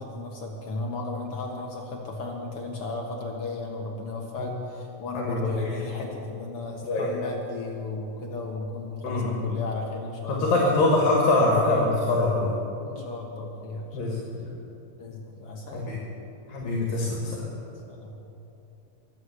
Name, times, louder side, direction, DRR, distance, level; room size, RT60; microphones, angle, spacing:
voice 1, 0.0-10.7 12.8-14.0 15.0-15.9 17.9-18.2, left 2 dB, 55° left, 0 dB, 1.7 m, -35 dB
voice 2, 5.2-5.8 6.8-7.1 9.0-9.4 10.3-12.6 13.9-14.5 15.7-16.0 16.5-17.5, left 2 dB, 80° left, -3 dB, 3.7 m, -24 dB
22.5 x 7.9 x 8.1 m, 2.9 s
omnidirectional pair, 4.0 m